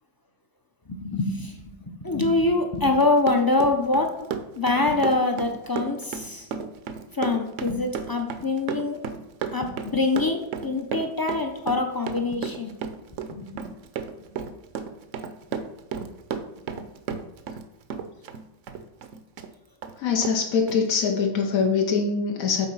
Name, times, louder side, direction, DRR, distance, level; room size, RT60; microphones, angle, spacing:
voice 1, 0.9-4.3 4.6-6.5 7.1-9.0 9.5-12.8 13.3-13.7 16.7-16.8, left 2 dB, 30° left, 4 dB, 0.4 m, -25 dB
Run, 2.8-17.6 17.9-19.5 19.8-19.9 20.2-20.4 20.7-20.8, right 7 dB, 65° right, 1.0 m, -33 dB
voice 2, 20.0-22.7, left 5 dB, 85° left, 2 dB, 1.3 m, -23 dB
7.6 x 4.1 x 5.4 m, 0.90 s
omnidirectional pair, 1.4 m